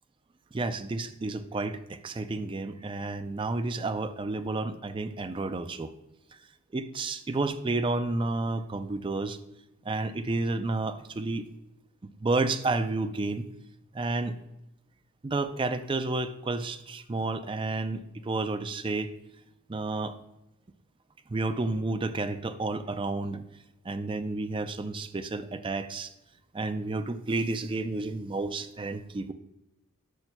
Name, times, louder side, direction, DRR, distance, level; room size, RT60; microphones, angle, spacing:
voice 1, 0.5-5.9 6.7-9.4 9.9-11.4 12.2-13.4 13.9-14.3 15.2-19.1 19.7-20.1 21.3-23.4 23.9-26.1 26.5-29.3, right 3 dB, 20° right, 8 dB, 0.4 m, -31 dB
10.5 x 5.9 x 2.2 m, 0.90 s
head